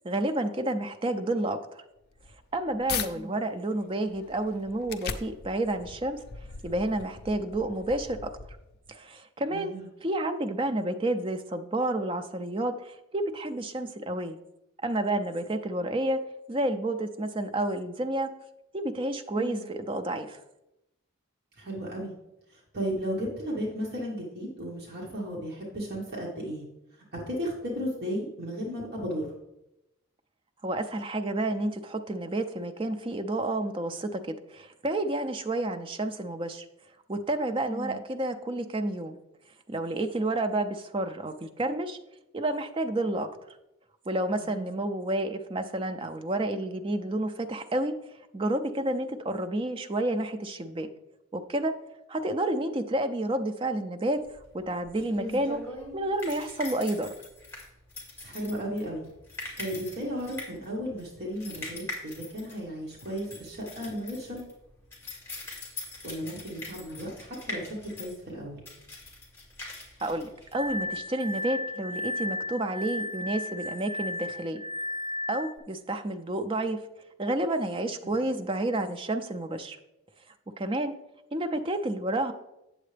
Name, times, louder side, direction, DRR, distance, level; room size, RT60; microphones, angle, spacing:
voice 1, 0.0-1.8 2.5-6.2 6.6-8.3 8.9-9.7 10.0-14.4 14.8-16.2 16.5-18.3 18.7-20.4 30.6-36.7 37.1-39.2 39.7-42.0 42.3-43.3 44.1-50.9 51.3-51.7 52.1-55.6 55.9-57.1 70.0-74.6 75.3-76.8 77.2-79.8 80.5-80.9 81.3-82.3, right 1 dB, 25° right, 7 dB, 0.4 m, -30 dB
sound 1, 2.0-3.1 3.6-8.9, left 6 dB, 45° left, 0.5 m, -40 dB
voice 2, 9.5-9.9 19.3-19.6 21.6-22.1 22.5-26.7 26.9-29.4 37.7-38.0 44.4-44.7 55.2-55.4 58.2-59.0 59.6-64.4 66.0-68.6 78.0-78.2, equal, 45° right, -4 dB, 1.4 m, -35 dB
sound 2, 54.3-71.0, left 2 dB, 10° left, 2.2 m, -42 dB
Glass, 70.5-75.6, left 2 dB, 90° right, 0.7 m, -34 dB
8.5 x 7.3 x 3.3 m, 0.90 s
head